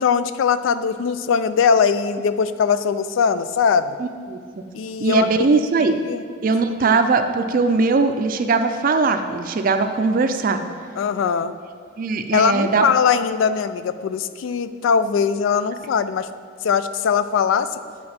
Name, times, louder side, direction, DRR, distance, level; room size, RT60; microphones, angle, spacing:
voice 1, 0.0-4.0 4.7-5.5 5.9-6.2 6.8-7.0 10.9-11.5 12.3-16.3 16.6-17.8, left 6 dB, 90° left, 13 dB, 0.3 m, -21 dB
voice 2, 4.0-4.4 5.0-6.0 6.4-10.6 12.0-12.9, right 4 dB, 45° right, 8 dB, 0.4 m, -20 dB
8.6 x 4.7 x 4.3 m, 2.2 s
head